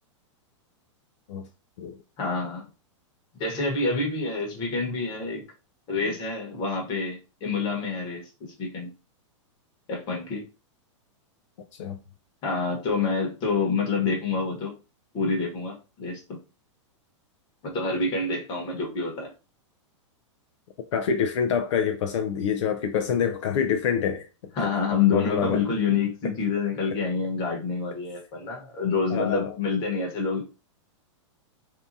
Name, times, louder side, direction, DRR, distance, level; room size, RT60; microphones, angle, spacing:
voice 1, 2.2-2.6 3.4-5.4 5.9-8.9 9.9-10.5 12.4-14.7 15.1-16.4 17.7-19.3 24.6-30.5, left 4 dB, 30° left, 1.1 m, -27 dB
voice 2, 20.9-24.2 25.1-25.6 29.1-29.6, left 7 dB, 70° left, 0.4 m, -26 dB
2.7 x 2.3 x 2.6 m
supercardioid pair, 155°, 16 cm